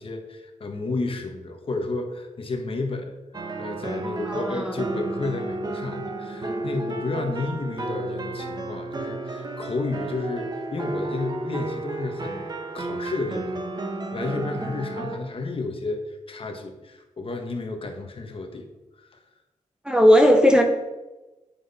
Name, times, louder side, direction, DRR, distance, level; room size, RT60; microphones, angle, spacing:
voice 1, 0.0-3.1 3.6-18.7 19.0-19.2, left 3 dB, 45° left, 4 dB, 1.5 m, -32 dB
sound 1, 3.3-15.2, right 2 dB, 30° right, 1.2 m, -32 dB
voice 2, 4.3-4.7 19.8-20.6, equal, 5° right, 4 dB, 0.9 m, -17 dB
10.0 x 9.2 x 4.3 m, 1.1 s
wide cardioid pair, 180°, 13 cm